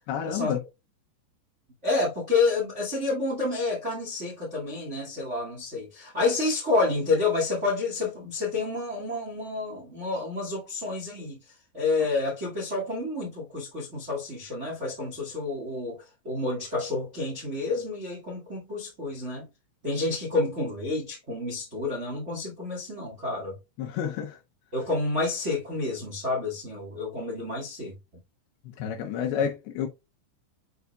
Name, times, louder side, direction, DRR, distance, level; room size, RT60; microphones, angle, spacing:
voice 1, 0.1-0.6 23.8-24.4 28.8-29.9, left 8 dB, 75° left, 2.5 m, -29 dB
voice 2, 1.8-11.4 11.7-19.5 19.8-23.5 24.7-28.0, left 3 dB, 40° right, 0.9 m, -29 dB
8.2 x 5.4 x 2.3 m
omnidirectional pair, 5.2 m